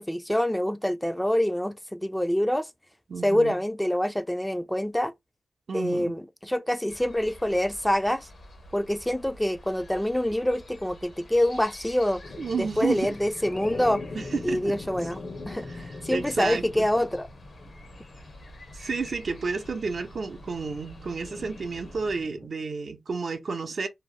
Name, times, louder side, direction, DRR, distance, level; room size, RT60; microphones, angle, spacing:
voice 1, 0.0-2.7 3.2-5.1 5.7-8.3 8.7-12.2 12.6-14.0 14.4-15.2 15.5-15.7 16.0-17.3, left 1 dB, 5° left, 0.4 m, -26 dB
voice 2, 3.1-3.6 5.7-6.2 12.4-13.1 14.1-14.6 15.6-16.9 18.7-23.9, right 4 dB, 65° right, 0.6 m, -31 dB
sound 1, 6.9-22.2, equal, 65° left, 1.0 m, -48 dB
sound 2, 12.2-22.5, left 3 dB, 50° left, 0.6 m, -42 dB
2.7 x 2.0 x 3.1 m
cardioid pair, 55°, 0 cm